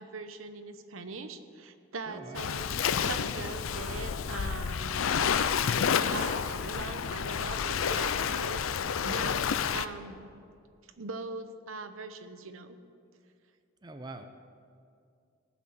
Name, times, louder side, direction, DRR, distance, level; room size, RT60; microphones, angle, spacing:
voice 1, 0.0-5.0 6.1-10.3 11.0-12.8, right 3 dB, 90° right, 9 dB, 0.9 m, -41 dB
voice 2, 2.0-2.5 13.8-14.3, right 2 dB, 20° right, 7 dB, 0.6 m, -44 dB
sound 1, 2.1-7.5, right 2 dB, 60° left, 2.1 m, -51 dB
Waves surf, 2.3-9.9, left 7 dB, 85° left, 0.5 m, -30 dB
18.0 x 6.1 x 7.8 m, 2.4 s
head